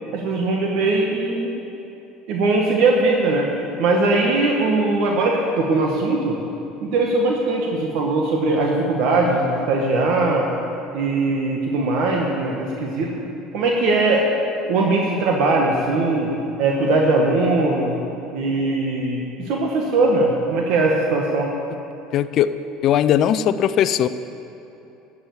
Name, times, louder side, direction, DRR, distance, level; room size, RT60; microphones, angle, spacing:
voice 1, 0.1-1.5 2.3-6.4 6.8-10.5 10.9-13.1 13.5-14.3 14.7-16.3 16.6-18.0 18.3-21.5, right 2 dB, 65° right, 0 dB, 1.5 m, -20 dB
voice 2, 22.1-22.5 22.8-24.1, left 10 dB, 55° left, 12 dB, 0.5 m, -18 dB
11.5 x 7.2 x 8.1 m, 2.9 s
supercardioid pair, 100°, 0 cm